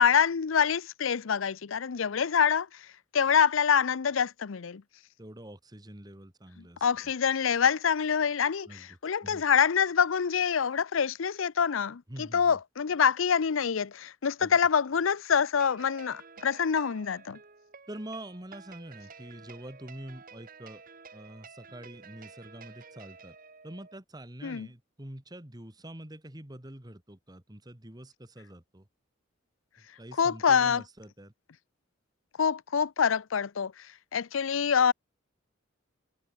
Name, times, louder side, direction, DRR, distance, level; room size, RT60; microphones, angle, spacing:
voice 1, 0.0-2.7 3.1-4.8 6.8-17.4 24.4-24.7 30.2-30.8 32.4-33.7 34.1-34.9, left 7 dB, 90° left, 0.6 m, -26 dB
voice 2, 5.2-6.9 8.7-9.4 12.1-12.6 14.4-14.6 17.9-20.8 21.1-23.4 23.6-28.9 29.8-31.3, right 1 dB, 20° right, 1.8 m, -45 dB
sound 1, 15.5-24.0, right 5 dB, 45° right, 2.0 m, -51 dB
head